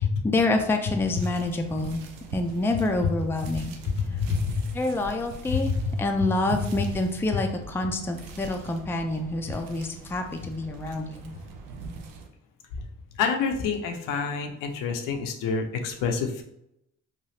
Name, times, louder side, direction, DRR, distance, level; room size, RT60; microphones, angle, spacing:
voice 1, 0.2-2.0 2.3-3.8 4.7-5.7 6.0-11.2, left 2 dB, 5° left, 4 dB, 0.4 m, -27 dB
sound 1, 0.9-12.3, right 3 dB, 85° right, 0.5 m, -42 dB
voice 2, 3.8-4.8 5.5-6.0 6.2-6.7 7.3-7.4 12.8-12.9 13.1-16.4, left 6 dB, 75° left, 4 dB, 0.6 m, -28 dB
3.1 x 2.3 x 2.7 m, 0.80 s
supercardioid pair, 60°, 33 cm